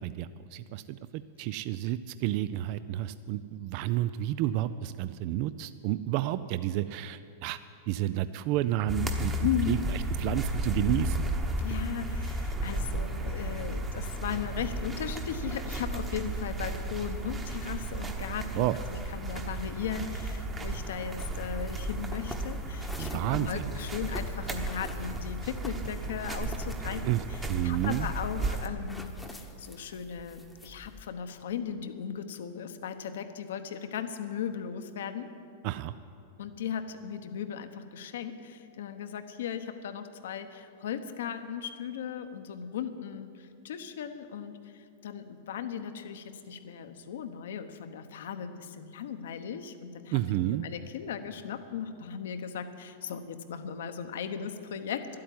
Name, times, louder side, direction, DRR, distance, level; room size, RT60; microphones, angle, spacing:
voice 1, 0.0-7.6 7.9-11.3 18.5-18.8 23.0-23.8 27.0-28.1 35.6-35.9 50.1-50.7, right 13 dB, 50° right, 13 dB, 0.4 m, -31 dB
sound 1, 8.9-28.7, right 1 dB, 20° right, 1.1 m, -34 dB
voice 2, 9.4-9.8 11.6-35.3 36.4-50.2 50.6-55.2, left 8 dB, 75° left, 9 dB, 0.9 m, -37 dB
sound 2, 21.3-31.0, left 1 dB, 5° left, 1.0 m, -46 dB
11.5 x 8.6 x 9.4 m, 2.5 s
hypercardioid pair, 135°, 0 cm